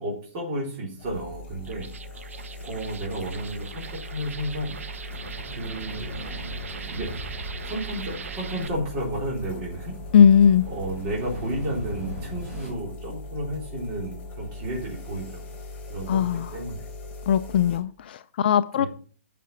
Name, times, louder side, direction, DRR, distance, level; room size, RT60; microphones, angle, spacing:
voice 1, 0.0-1.9 2.6-4.8 5.5-6.1 6.9-7.2 7.6-10.0 10.7-15.4 15.9-16.9 18.7-18.9, right 1 dB, 30° right, 3.4 m, -32 dB
sound 1, 1.0-17.8, left 2 dB, 25° left, 3.9 m, -40 dB
sound 2, 1.6-8.7, right 5 dB, 70° right, 0.9 m, -40 dB
sound 3, 5.1-12.7, equal, 15° right, 5.1 m, -40 dB
voice 2, 10.1-10.7 16.1-16.5 17.3-18.9, left 8 dB, 45° left, 0.4 m, -19 dB
9.3 x 5.9 x 5.7 m
hypercardioid pair, 155°, 8 cm